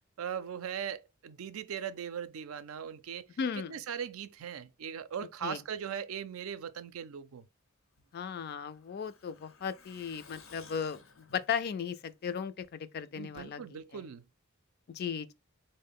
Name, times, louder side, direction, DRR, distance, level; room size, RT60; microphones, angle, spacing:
voice 1, 0.2-3.3 3.7-7.4 13.2-14.2, right 8 dB, 85° right, 0.4 m, -39 dB
voice 2, 3.4-3.8 5.4-5.6 8.1-14.1 14.9-15.3, left 7 dB, 50° left, 0.3 m, -36 dB
Truck, 8.0-12.7 13.0-13.1 13.4-13.5, left 4 dB, 75° left, 0.8 m, -57 dB
4.1 x 2.1 x 3.6 m
head